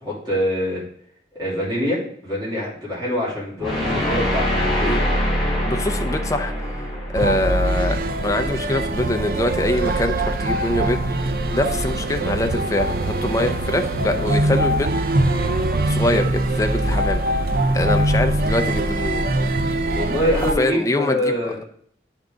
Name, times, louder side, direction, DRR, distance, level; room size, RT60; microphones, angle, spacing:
voice 1, 0.0-0.8 1.4-5.0 19.9-21.6, left 1 dB, 25° right, -8 dB, 3.0 m, -24 dB
sound 1, 3.6-8.7, equal, ahead, 1.6 m, -24 dB
voice 2, 5.6-6.5 7.1-15.2 15.8-17.2 17.7-19.3 20.4-21.5, left 1 dB, 20° left, 5 dB, 0.5 m, -24 dB
sound 2, 7.1-20.5, right 1 dB, 55° right, 0.5 m, -22 dB
10.0 x 3.6 x 3.8 m, 0.64 s
head